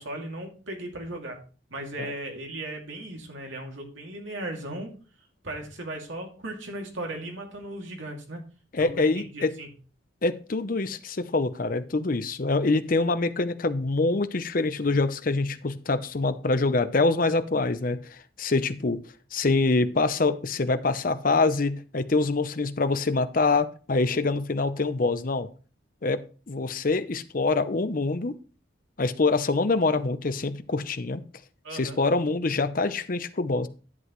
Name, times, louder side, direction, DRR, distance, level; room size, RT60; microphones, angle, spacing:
voice 1, 0.0-1.4 1.7-4.9 5.4-8.4 8.8-9.7 31.6-32.0, right 1 dB, 75° right, 2.4 m, -37 dB
voice 2, 8.7-9.5 10.2-18.0 18.4-19.0 19.3-25.5 26.0-26.2 26.5-28.3 29.0-31.2 31.7-33.7, left 3 dB, 45° left, 0.6 m, -25 dB
11.0 x 8.0 x 3.1 m
head